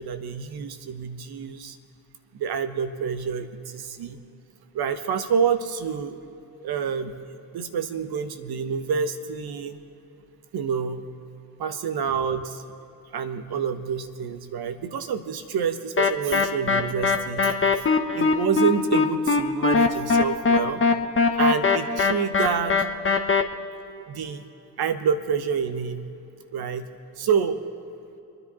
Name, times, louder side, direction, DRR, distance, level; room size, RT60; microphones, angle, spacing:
voice 1, 0.0-1.8 2.3-4.2 4.7-6.1 6.6-7.2 7.5-9.8 10.5-11.0 11.6-12.6 13.1-17.9 18.1-20.8 21.3-22.7 24.1-24.4 24.8-26.1 26.5-26.9 27.2-27.6, right 7 dB, 50° right, 9 dB, 1.4 m, -27 dB
sound 1, 16.0-23.4, left 4 dB, 25° left, 1.4 m, -21 dB
28.0 x 10.0 x 4.3 m, 2.9 s
hypercardioid pair, 50°, 47 cm